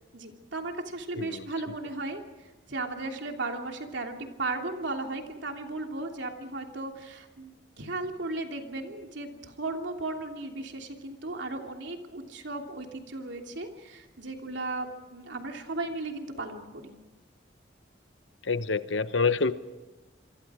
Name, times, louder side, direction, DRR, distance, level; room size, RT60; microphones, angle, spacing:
voice 1, 0.1-2.2 2.7-17.0, right 2 dB, 75° right, 3 dB, 3.0 m, -36 dB
voice 2, 18.4-19.5, left 4 dB, 80° left, 12 dB, 1.0 m, -27 dB
27.5 x 23.0 x 5.0 m, 1.1 s
head